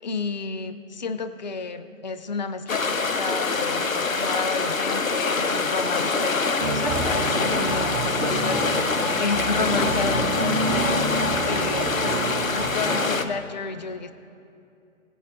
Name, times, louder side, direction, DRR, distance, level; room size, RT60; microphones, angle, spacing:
voice 1, 0.0-8.7 9.1-11.0 11.5-12.2 12.5-14.1, left 4 dB, 35° left, 11 dB, 0.5 m, -31 dB
sound 1, 2.7-13.3, left 4 dB, 85° left, 0.9 m, -25 dB
sound 2, 6.6-13.1, right 3 dB, 50° right, 2.0 m, -29 dB
20.5 x 8.4 x 2.6 m, 2.5 s
figure-of-eight pair, 140°, 40 cm